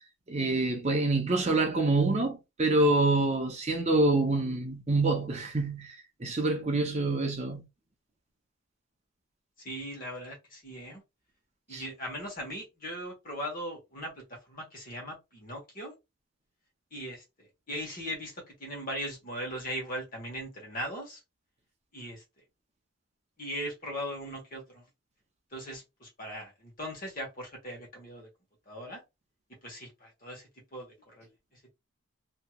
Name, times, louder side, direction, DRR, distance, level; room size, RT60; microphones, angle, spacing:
voice 1, 0.3-7.6 11.7-11.8, right 2 dB, 30° right, 0.6 m, -26 dB
voice 2, 9.6-11.0 11.7-15.9 16.9-17.2 17.7-21.2 21.9-22.2 23.4-24.8 25.5-28.3 28.7-29.0 29.6-31.3, equal, 40° left, 1.2 m, -39 dB
3.1 x 2.8 x 2.3 m
head